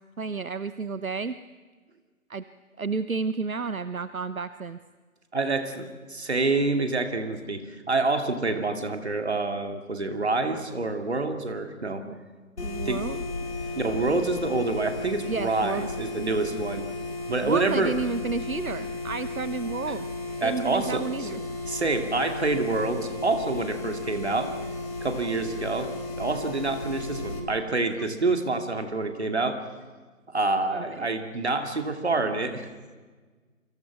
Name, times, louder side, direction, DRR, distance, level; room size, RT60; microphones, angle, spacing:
voice 1, 0.2-1.4 2.3-2.4 2.8-4.8 12.0-12.2 12.6-13.2 15.2-15.9 17.4-20.1 20.4-21.4 28.0-28.1 30.7-31.1, right 4 dB, 75° right, 13 dB, 1.0 m, -31 dB
voice 2, 5.3-12.1 12.8-13.1 13.8-16.9 17.3-17.9 20.4-21.3 21.7-24.5 25.0-29.6 30.3-32.7, right 3 dB, 50° right, 6 dB, 2.7 m, -27 dB
sound 1, 12.6-27.4, left 2 dB, 50° left, 4.8 m, -34 dB
29.0 x 24.5 x 6.1 m, 1.4 s
figure-of-eight pair, 170°, 42 cm